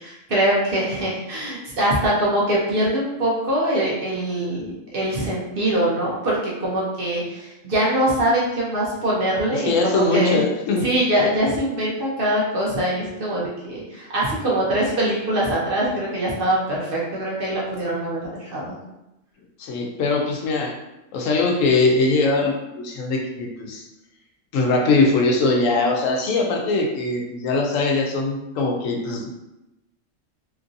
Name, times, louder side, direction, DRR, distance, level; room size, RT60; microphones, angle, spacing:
voice 1, 0.0-10.4 10.8-18.8, right 1 dB, 50° right, -5 dB, 0.8 m, -23 dB
voice 2, 9.5-10.9 19.6-20.8 21.1-23.8 24.5-29.3, left 3 dB, 80° left, 1 dB, 0.9 m, -21 dB
3.0 x 2.5 x 2.5 m, 0.93 s
omnidirectional pair, 1.3 m